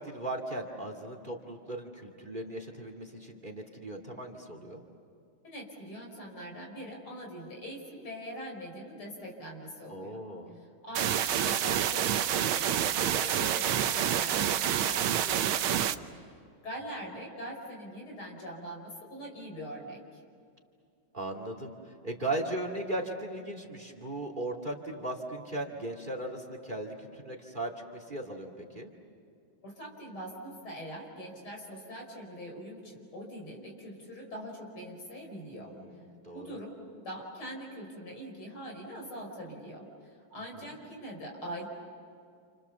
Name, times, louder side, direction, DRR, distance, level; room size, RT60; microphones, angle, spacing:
voice 1, 0.0-4.8 9.9-10.5 21.1-28.9 35.6-36.6 40.6-40.7, right 1 dB, 25° right, 4 dB, 2.3 m, -37 dB
voice 2, 5.4-10.2 10.5-15.9 16.6-20.0 29.6-35.7 36.3-36.8 37.0-41.7, equal, 85° left, 0 dB, 6.0 m, -42 dB
sound 1, 10.9-15.9, right 10 dB, 80° right, 1.7 m, -28 dB
29.0 x 29.0 x 7.0 m, 2.3 s
omnidirectional pair, 2.3 m